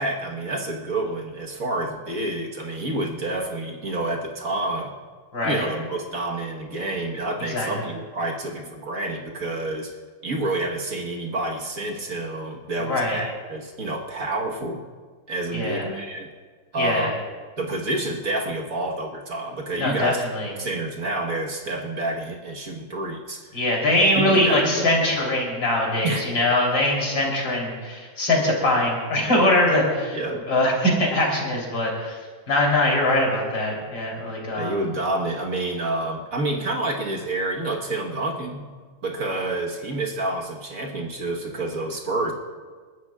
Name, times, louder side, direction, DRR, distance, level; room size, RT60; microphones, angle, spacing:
voice 1, 0.0-4.9 5.4-9.9 10.2-14.8 15.3-16.3 16.7-17.2 17.6-20.2 20.6-23.5 24.1-25.1 26.0-26.2 30.1-30.4 34.5-38.7 39.0-42.3, right 2 dB, 50° right, 0 dB, 1.7 m, -28 dB
voice 2, 5.3-5.6 7.5-7.9 12.8-13.2 15.5-15.9 16.8-17.1 19.8-20.5 23.5-30.2 30.5-32.2 32.5-34.8, left 1 dB, 75° left, -2 dB, 4.3 m, -22 dB
29.5 x 13.0 x 2.4 m, 1.5 s
omnidirectional pair, 2.0 m